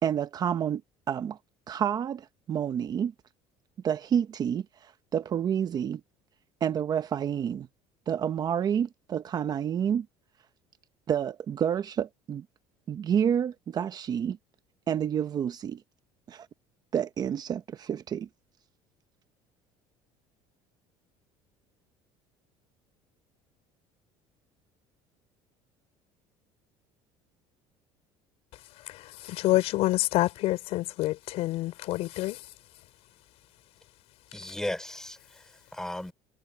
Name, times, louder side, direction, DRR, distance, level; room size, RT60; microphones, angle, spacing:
voice 1, 0.0-0.8 1.1-1.4 1.7-3.1 3.8-6.0 6.6-7.7 8.1-10.1 11.1-12.4 12.9-14.4 14.9-15.8 16.3-16.5 16.9-18.3, right 8 dB, 35° right, 0.9 m, -29 dB
voice 2, 28.8-32.4, left 17 dB, 65° left, 4.4 m, -27 dB
voice 3, 34.3-36.1, left 1 dB, 5° left, 4.2 m, -36 dB
cardioid pair, 135°, 11 cm